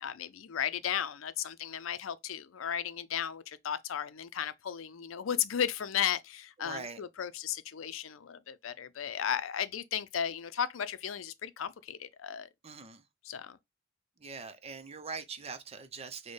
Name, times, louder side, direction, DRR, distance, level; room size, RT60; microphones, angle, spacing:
voice 1, 0.0-12.5 13.2-13.6, left 9 dB, 90° left, 0.5 m, -35 dB
voice 2, 6.6-7.0 12.6-13.0 14.2-16.3, right 4 dB, 30° right, 0.6 m, -42 dB
6.3 x 2.2 x 3.2 m
head